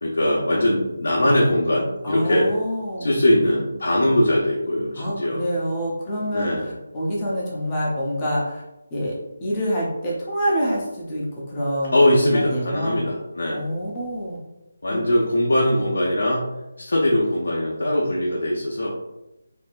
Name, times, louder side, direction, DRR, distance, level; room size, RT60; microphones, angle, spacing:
voice 1, 0.0-2.5 3.0-5.4 6.3-6.7 11.9-13.7 14.8-16.5 16.8-18.9, left 1 dB, 70° left, -3 dB, 0.7 m, -21 dB
voice 2, 2.0-3.1 5.0-8.6 8.9-13.1 13.5-14.4 14.9-15.0, equal, 10° left, -6 dB, 0.6 m, -26 dB
4.2 x 2.7 x 2.4 m, 0.95 s
figure-of-eight pair, 180°, 0 cm